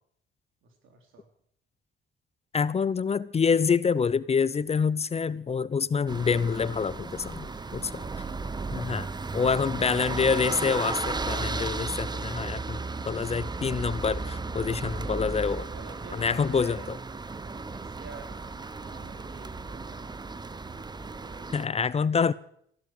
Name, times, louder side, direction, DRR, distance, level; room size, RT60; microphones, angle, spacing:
voice 1, 0.6-1.2 2.7-2.8 7.5-8.2 15.4-16.9 17.4-18.4 18.8-20.2 21.0-22.3, right 4 dB, 85° right, 4.3 m, -50 dB
voice 2, 2.5-7.8 8.2-8.3 8.7-9.1 9.3-15.6 16.1-16.8 21.5-22.3, left 5 dB, 30° left, 0.7 m, -26 dB
sound 1, 6.1-21.7, right 3 dB, 20° right, 0.9 m, -35 dB
15.0 x 12.0 x 7.8 m
cardioid pair, 90°, 20 cm